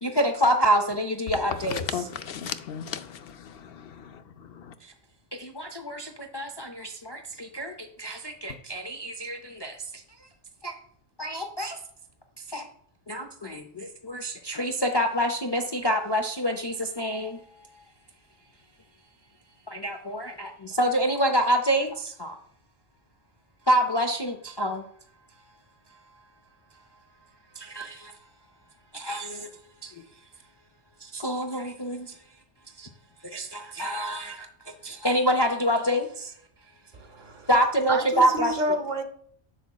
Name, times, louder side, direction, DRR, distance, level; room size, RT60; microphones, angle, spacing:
voice 1, 0.0-2.0 5.4-7.7 8.0-9.7 10.6-10.7 11.2-11.8 12.5-12.6 13.1-17.4 19.7-22.3 23.7-24.8 27.6-28.0 28.9-29.5 29.8-29.9 31.1-32.1 33.3-34.5 34.8-36.3 37.5-38.8, equal, 30° left, 0.5 m, -27 dB
voice 2, 1.9-4.1 4.6-4.7, left 8 dB, 65° left, 0.8 m, -36 dB
voice 3, 36.9-37.5 37.9-39.0, right 1 dB, 45° right, 1.0 m, -29 dB
9.9 x 7.1 x 2.3 m
omnidirectional pair, 1.1 m